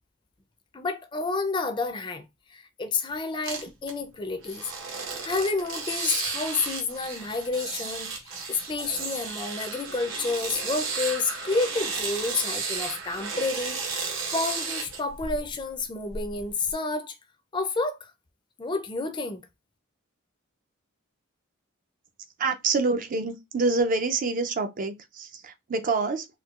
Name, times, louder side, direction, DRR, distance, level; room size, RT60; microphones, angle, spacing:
voice 1, 0.7-4.6 5.2-13.8 14.3-17.1 17.5-18.1 18.6-19.4, left 3 dB, 25° left, 0.4 m, -30 dB
sound 1, 3.4-3.9 4.4-15.6 16.1-16.7, right 4 dB, 70° right, 1.0 m, -33 dB
voice 2, 22.4-26.3, right 3 dB, 40° right, 0.4 m, -26 dB
4.4 x 2.2 x 2.4 m
head